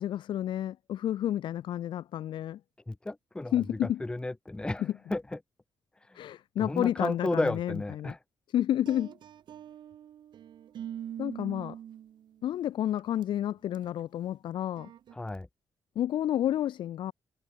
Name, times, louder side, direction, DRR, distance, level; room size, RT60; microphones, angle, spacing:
voice 1, 0.0-2.6 3.5-4.0 4.8-4.9 6.1-8.1 8.5-9.1 11.2-11.8 12.4-14.9 16.0-17.1, left 11 dB, 80° left, 0.9 m, -30 dB
voice 2, 2.9-5.4 6.1-6.2 6.6-8.2 15.1-15.5, left 2 dB, 10° left, 1.3 m, -33 dB
sound 1, 8.9-12.5 13.0-13.2 13.7-14.0 14.8-15.1, right 10 dB, 70° right, 1.4 m, -43 dB
cardioid pair, 145°, 8 cm